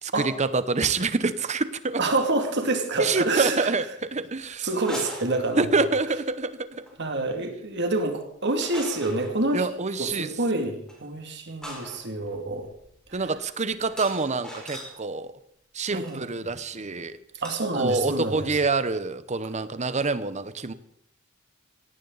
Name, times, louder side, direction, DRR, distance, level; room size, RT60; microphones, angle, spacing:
voice 1, 0.0-2.0 3.0-4.7 5.6-6.8 9.5-10.3 13.1-15.3 15.7-17.2 17.7-20.7, right 3 dB, 35° right, 13 dB, 0.9 m, -26 dB
voice 2, 2.0-3.7 4.6-5.9 7.0-9.7 10.0-12.7 13.2-13.3 15.9-16.3 17.4-18.6, right 2 dB, 55° right, 4 dB, 2.5 m, -27 dB
sound 1, 4.7-5.9 6.7-7.0 8.6-9.4 10.9-11.0 11.6-15.0 15.9-16.2 17.4-17.7 17.9-18.0 18.2-18.7, equal, 5° left, 4.8 m, -40 dB
17.0 x 17.0 x 4.1 m, 0.70 s
head